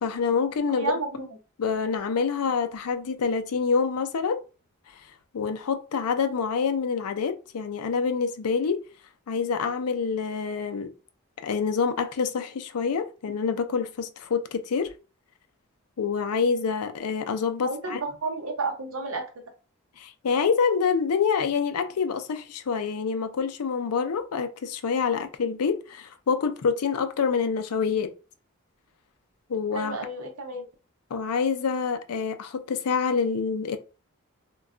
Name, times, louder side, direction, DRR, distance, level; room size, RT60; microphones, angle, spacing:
voice 1, 0.0-0.9 1.6-4.4 5.3-8.8 9.3-10.9 11.4-14.9 16.0-18.0 20.0-28.1 29.5-30.0 31.1-33.8, left 5 dB, 85° left, 0.4 m, -26 dB
voice 2, 0.7-1.3 17.6-19.2 29.7-30.7, right 3 dB, 70° right, 0.9 m, -31 dB
2.3 x 2.2 x 3.6 m
head